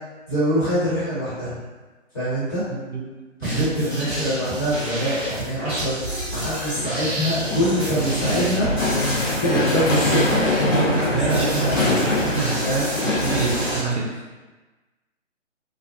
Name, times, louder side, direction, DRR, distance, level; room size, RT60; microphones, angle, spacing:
voice 1, 0.3-1.6 2.1-2.6 3.4-8.7 9.4-12.1 12.6-12.8 13.2-13.4, equal, 20° left, -12 dB, 0.9 m, -25 dB
sound 1, 3.4-13.8, right 1 dB, 5° right, 0.7 m, -30 dB
sound 2, 7.4-13.8, left 2 dB, 90° left, 0.8 m, -23 dB
voice 2, 11.0-11.8 12.3-12.7 13.0-14.1, right 4 dB, 65° right, -2 dB, 0.6 m, -26 dB
2.4 x 2.1 x 2.4 m, 1.2 s
figure-of-eight pair, 135°, 38 cm